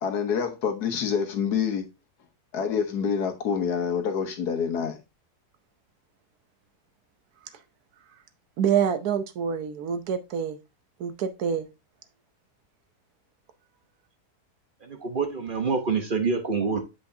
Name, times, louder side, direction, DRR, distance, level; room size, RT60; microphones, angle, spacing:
voice 1, 0.0-1.9 2.5-5.0, left 7 dB, 80° left, 1.6 m, -27 dB
voice 2, 8.6-10.6 11.0-11.7, right 8 dB, 75° right, 1.2 m, -26 dB
voice 3, 14.8-16.8, right 4 dB, 40° right, 1.0 m, -26 dB
7.8 x 5.1 x 2.7 m
omnidirectional pair, 1.7 m